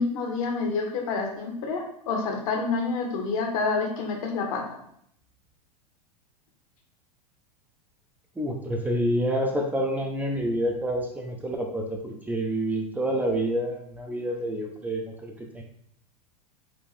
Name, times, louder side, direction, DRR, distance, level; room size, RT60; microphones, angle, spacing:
voice 1, 0.0-4.8, left 4 dB, 60° left, 2 dB, 1.0 m, -28 dB
voice 2, 8.4-15.6, right 1 dB, 10° right, 0 dB, 0.5 m, -28 dB
4.3 x 2.5 x 3.2 m, 0.68 s
hypercardioid pair, 95°, 21 cm